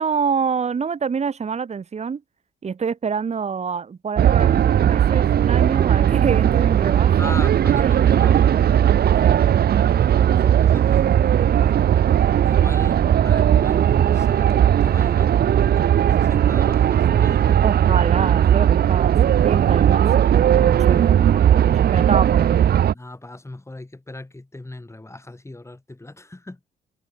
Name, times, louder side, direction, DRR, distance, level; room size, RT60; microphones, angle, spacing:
voice 1, 0.0-2.2 2.6-7.3 7.7-8.9 9.2-9.4 17.6-22.6, right 6 dB, 35° right, 1.3 m, -26 dB
sound 1, 4.2-22.9, right 10 dB, 50° right, 0.7 m, -17 dB
voice 2, 7.2-9.1 10.0-11.8 12.3-17.6 20.8-21.1 22.9-26.6, left 2 dB, 15° left, 5.2 m, -38 dB
cardioid pair, 90°, 20 cm